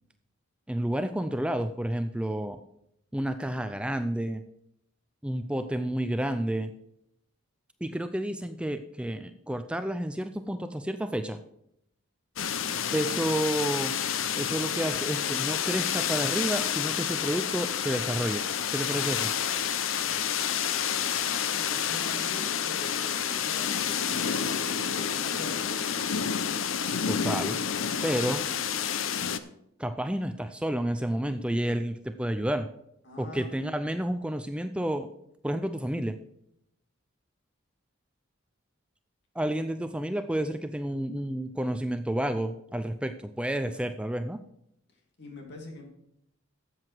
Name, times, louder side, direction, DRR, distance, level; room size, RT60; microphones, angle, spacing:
voice 1, 0.7-2.6 3.1-4.4 5.2-6.7 7.8-11.4 12.9-13.9 14.4-18.4 18.7-19.3 27.1-27.6 28.0-28.5 29.8-32.7 33.2-35.1 35.4-36.2 39.3-44.4, right 1 dB, 5° right, 9 dB, 0.4 m, -30 dB
sound 1, 12.4-29.4, left 8 dB, 75° left, 0.7 m, -29 dB
voice 2, 21.5-25.7 33.0-33.5 45.2-45.8, left 2 dB, 55° left, 1 dB, 2.8 m, -43 dB
12.5 x 7.9 x 4.6 m, 0.76 s
head